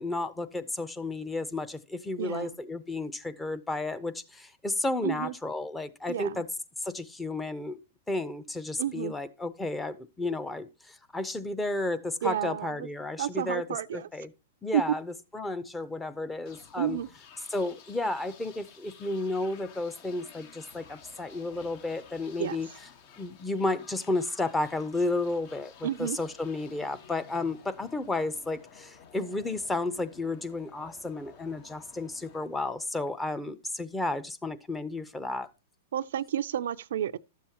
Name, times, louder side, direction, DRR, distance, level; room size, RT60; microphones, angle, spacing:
voice 1, 0.0-6.5 6.8-7.8 8.1-13.7 13.9-14.3 14.6-17.0 17.5-22.7 23.2-35.5, left 2 dB, 10° left, 0.7 m, -32 dB
voice 2, 2.2-2.5 5.0-5.3 6.1-6.4 8.8-9.1 12.2-12.7 13.2-14.1 14.7-14.8 16.8-17.1 22.4-22.6 25.8-26.2 35.9-37.2, right 10 dB, 75° right, 0.4 m, -30 dB
sound 1, 16.4-33.2, left 7 dB, 50° left, 1.2 m, -53 dB
12.0 x 7.3 x 2.9 m
hypercardioid pair, 120°, 0 cm